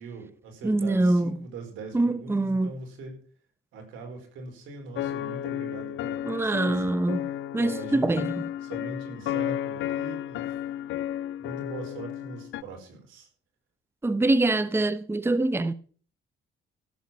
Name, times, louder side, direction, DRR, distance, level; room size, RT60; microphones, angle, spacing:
voice 1, 0.0-3.2 3.7-7.0 7.6-8.3 8.6-10.5 11.4-13.3, right 3 dB, 90° right, 4.8 m, -41 dB
voice 2, 0.6-1.4 1.9-2.7 6.3-7.2 7.5-8.4 14.0-15.7, right 2 dB, 10° right, 0.8 m, -24 dB
sound 1, 5.0-12.6, left 11 dB, 80° left, 0.6 m, -33 dB
16.0 x 8.1 x 5.8 m
cardioid pair, 90°, 20 cm